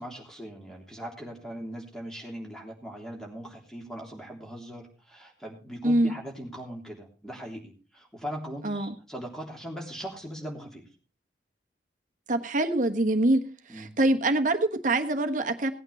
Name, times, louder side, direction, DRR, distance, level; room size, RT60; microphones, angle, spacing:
voice 1, 0.0-10.8 13.7-13.9, equal, 5° left, 0 dB, 3.3 m, -40 dB
voice 2, 5.8-6.1 8.6-8.9 12.3-13.4 13.7-15.7, right 1 dB, 45° right, 6 dB, 1.3 m, -24 dB
18.0 x 9.0 x 4.2 m, 0.35 s
head